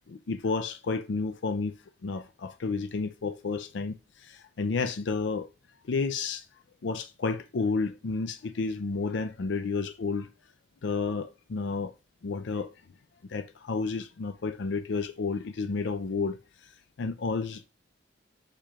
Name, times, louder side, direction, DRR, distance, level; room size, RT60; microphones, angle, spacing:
voice 1, 0.1-1.8 2.0-5.5 5.9-6.5 6.8-10.3 10.8-11.9 12.2-12.8 13.3-16.7 17.0-17.7, left 4 dB, 70° left, 0.5 m, -31 dB
7.4 x 6.8 x 2.4 m
head